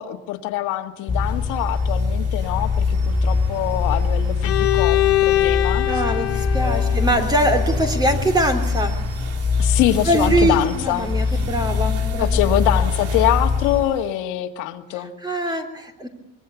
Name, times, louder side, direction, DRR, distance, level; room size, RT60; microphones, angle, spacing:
voice 1, 0.0-5.9 6.6-6.9 9.6-11.4 12.2-15.1, left 14 dB, 85° left, 5 dB, 2.1 m, -24 dB
sound 1, 1.0-14.2, right 7 dB, 50° right, 2.5 m, -41 dB
sound 2, 1.1-13.8, left 4 dB, 15° left, 3.5 m, -22 dB
Bowed string instrument, 4.4-8.3, left 15 dB, 50° left, 1.4 m, -23 dB
voice 2, 5.8-8.9 10.1-12.4 15.2-16.1, right 1 dB, 15° right, 6 dB, 3.3 m, -22 dB
25.0 x 22.5 x 8.4 m, 0.81 s
cardioid pair, 140°, 30 cm